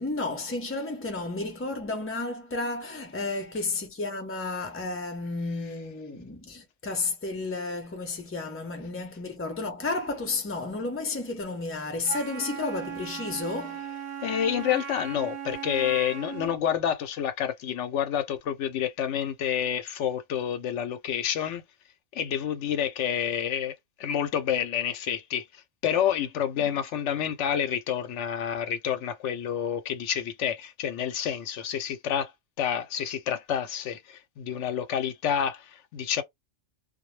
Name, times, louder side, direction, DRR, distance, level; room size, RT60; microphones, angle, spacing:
voice 1, 0.0-13.9, left 3 dB, 15° left, 0.6 m, -32 dB
Wind instrument woodwind instrument, 12.0-16.6, right 7 dB, 55° right, 0.7 m, -37 dB
voice 2, 14.2-21.6 22.1-32.3 32.6-36.2, left 9 dB, 80° left, 0.9 m, -29 dB
2.2 x 2.0 x 3.1 m
omnidirectional pair, 1.2 m